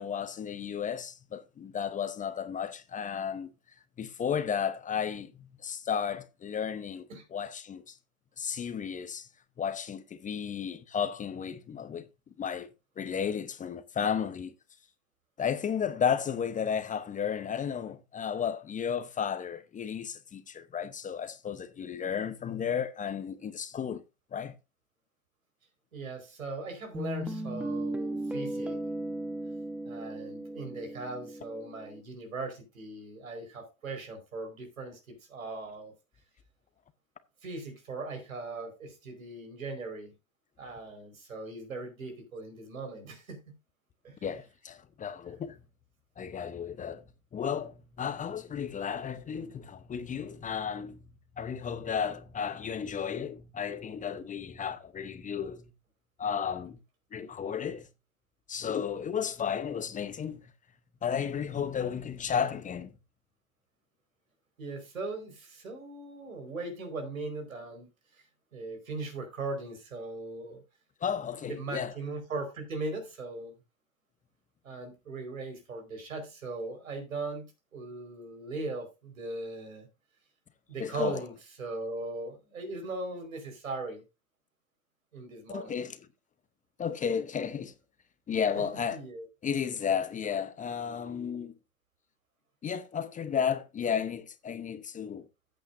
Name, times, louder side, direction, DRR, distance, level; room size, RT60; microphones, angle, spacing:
voice 1, 0.0-3.5 4.0-7.0 7.3-7.9 8.4-9.3 9.6-12.0 12.4-12.7 13.0-14.5 15.4-24.0 24.3-24.5 44.2-45.6 46.2-47.0 47.3-51.0 51.4-55.7 56.2-56.8 57.1-57.9 58.5-60.4 61.0-62.9 71.0-71.9 80.8-81.2 85.5-86.0 86.8-87.7 88.3-89.0 89.4-91.5 92.6-95.2, left 7 dB, 20° left, 0.8 m, -33 dB
voice 2, 25.9-28.8 29.8-35.9 37.4-40.1 40.6-43.4 44.0-44.2 64.6-67.9 68.1-68.2 68.5-70.6 71.5-73.5 74.6-79.9 80.7-81.3 81.6-84.0 85.1-85.7 88.9-89.3, right 3 dB, 85° right, 4.8 m, -39 dB
Guitar, 26.9-32.0, right 1 dB, 5° right, 1.0 m, -36 dB
14.0 x 8.5 x 2.6 m
hypercardioid pair, 100°, 40 cm